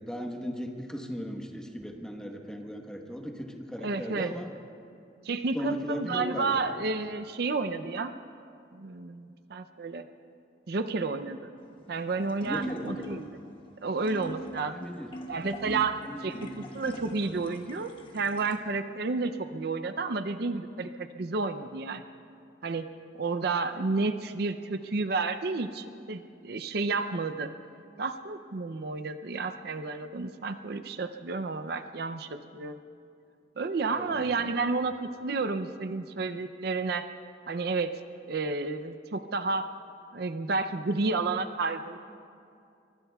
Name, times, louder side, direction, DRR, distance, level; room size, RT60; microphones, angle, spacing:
voice 1, 0.0-4.5 5.5-6.6 12.4-13.2 14.7-15.1 16.0-16.5 33.9-34.5, equal, 5° left, 2 dB, 1.2 m, -37 dB
voice 2, 3.8-4.3 5.2-8.1 8.7-10.0 10.7-11.4 11.9-13.4 13.8-14.7 15.3-20.9 21.2-22.0 22.6-22.9 23.1-27.5 28.0-32.8 33.6-37.1 37.5-37.9 38.3-39.7 40.1-42.0, right 3 dB, 65° right, 9 dB, 0.5 m, -31 dB
sound 1, 11.6-18.6, equal, 30° left, 1.3 m, -43 dB
23.5 x 23.5 x 2.3 m, 2.5 s
head